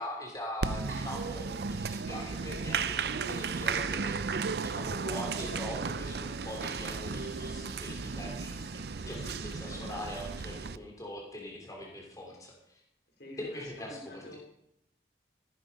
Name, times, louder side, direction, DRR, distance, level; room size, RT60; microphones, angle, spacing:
voice 1, 0.0-12.8 13.4-14.2, left 1 dB, 20° left, 0 dB, 3.2 m, -42 dB
Applause, 0.6-10.8, right 5 dB, 60° right, 0.5 m, -34 dB
voice 2, 9.0-9.9 13.2-14.4, left 1 dB, 60° left, 3 dB, 3.0 m, -47 dB
15.0 x 9.8 x 5.4 m, 0.79 s
head